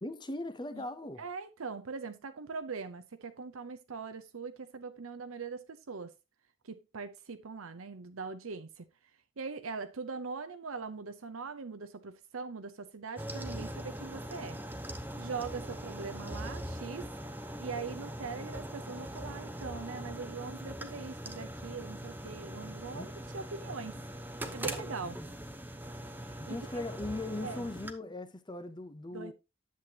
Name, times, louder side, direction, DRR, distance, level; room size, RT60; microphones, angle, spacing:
voice 1, 0.0-1.2 22.9-23.1 26.4-29.3, left 2 dB, 20° left, 0.6 m, -39 dB
voice 2, 1.2-6.1 6.6-8.9 9.4-14.6 15.2-17.1 17.6-24.0 24.5-25.2 26.2-26.8 27.4-27.7 29.1-29.3, right 4 dB, 75° right, 0.7 m, -41 dB
sound 1, 13.2-27.9, right 1 dB, 10° right, 0.8 m, -41 dB
10.5 x 7.8 x 2.8 m
head